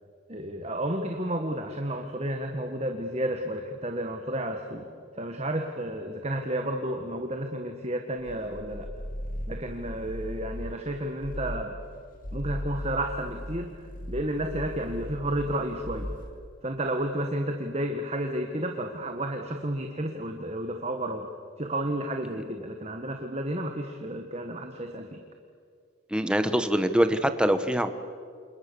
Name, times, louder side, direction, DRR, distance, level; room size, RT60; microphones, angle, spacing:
voice 1, 0.3-4.9 5.2-8.9 9.5-11.7 12.3-13.7 14.1-16.1 16.6-21.3 21.6-25.2, right 1 dB, 30° right, 4 dB, 1.6 m, -31 dB
sound 1, 8.2-10.8 11.2-11.7 12.1-16.4, equal, 40° left, 2.3 m, -37 dB
voice 2, 26.1-27.9, equal, 5° right, 9 dB, 1.1 m, -24 dB
28.5 x 28.0 x 7.0 m, 2.2 s
head